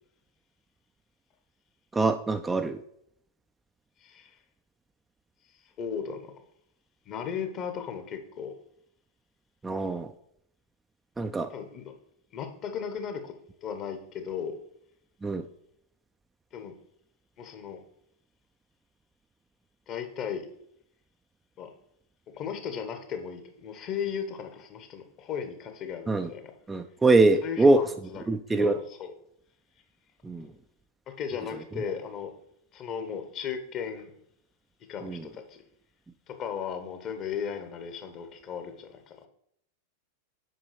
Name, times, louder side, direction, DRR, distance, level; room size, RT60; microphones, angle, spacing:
voice 1, 1.9-2.8 9.6-10.1 11.2-11.5 15.2-15.4 26.1-26.3 26.7-27.8 28.3-28.8 30.2-30.5 35.0-35.3, right 2 dB, 10° right, 0.4 m, -23 dB
voice 2, 4.0-4.4 5.8-6.3 7.1-8.5 11.5-11.9 12.3-14.6 16.5-16.8 17.4-17.8 19.9-20.5 21.6-21.7 22.3-26.5 27.4-27.8 28.1-28.2 28.5-29.1 31.1-32.3 32.7-34.1 34.9-35.6 36.3-39.3, left 7 dB, 35° left, 1.0 m, -36 dB
7.8 x 5.3 x 3.3 m
figure-of-eight pair, 90°, 0 cm